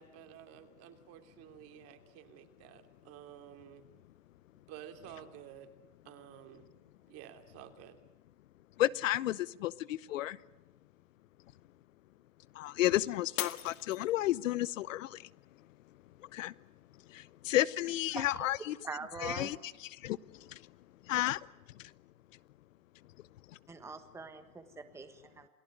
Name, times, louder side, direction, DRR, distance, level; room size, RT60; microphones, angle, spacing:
voice 1, 0.0-3.9 4.7-5.7 6.0-6.7 7.1-8.0, right 11 dB, 35° right, 7 dB, 2.9 m, -52 dB
voice 2, 8.8-10.4 12.5-15.3 16.3-16.5 17.1-18.8 19.2-19.6 19.9-20.7 21.1-21.5 21.8-21.9, left 15 dB, 70° left, 19 dB, 0.9 m, -32 dB
Shatter, 13.4-14.6 15.2-15.6 16.2-16.3, left 15 dB, 35° left, 1.6 m, -40 dB
voice 3, 18.8-19.5 23.7-25.5, right 4 dB, 5° right, 8 dB, 1.4 m, -43 dB
28.5 x 18.5 x 9.3 m, 1.0 s
supercardioid pair, 145°, 40 cm